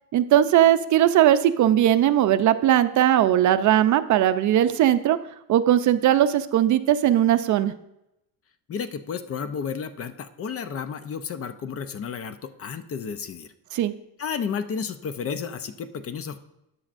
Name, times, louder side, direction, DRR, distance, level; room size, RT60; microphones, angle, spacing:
voice 1, 0.1-5.2 5.5-7.7 13.7-13.9, right 11 dB, 50° right, 11 dB, 0.6 m, -19 dB
voice 2, 8.7-13.5 14.2-16.4, left 6 dB, 35° left, 11 dB, 0.6 m, -32 dB
13.5 x 9.7 x 2.6 m, 0.84 s
cardioid pair, 125°, 38 cm